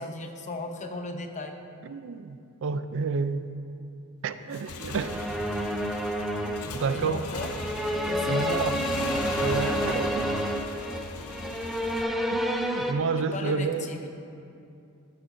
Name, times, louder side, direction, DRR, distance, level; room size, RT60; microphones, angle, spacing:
voice 1, 0.0-1.6 6.9-7.5 8.0-9.0 13.2-14.1, left 2 dB, 35° left, 5 dB, 0.7 m, -36 dB
voice 2, 1.8-3.5 4.2-5.3 6.4-7.3 8.2-8.8 9.4-10.3 12.3-13.9, right 5 dB, 60° right, 11 dB, 0.4 m, -30 dB
Motorcycle / Engine, 4.4-12.0, left 2 dB, 75° left, 0.7 m, -37 dB
sound 1, 5.0-12.9, equal, ahead, 0.5 m, -29 dB
13.0 x 10.0 x 2.6 m, 2.6 s
head